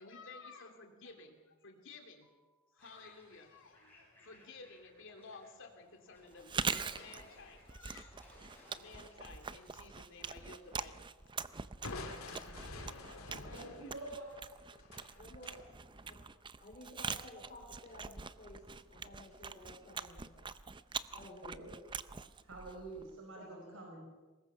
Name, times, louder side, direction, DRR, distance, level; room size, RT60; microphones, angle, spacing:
voice 1, 0.0-8.1 8.7-10.9 13.3-13.9, left 4 dB, 60° left, 4 dB, 3.2 m, -54 dB
sound 1, 2.8-16.2, left 1 dB, 10° left, 7.5 m, -65 dB
Chewing mastication, 6.3-23.2, right 5 dB, 20° right, 0.6 m, -44 dB
Crushing, 11.8-15.6, left 2 dB, 80° left, 2.5 m, -47 dB
voice 2, 12.0-12.8 13.1-13.8 15.1-15.7 16.1-16.2 16.6-20.5 21.1-21.7 23.4-23.8, left 1 dB, 35° left, -1 dB, 4.4 m, -54 dB
voice 3, 13.5-14.3 21.4-21.8 22.4-24.1, right 2 dB, 65° right, 0 dB, 5.0 m, -47 dB
24.0 x 20.5 x 5.8 m, 1.3 s
head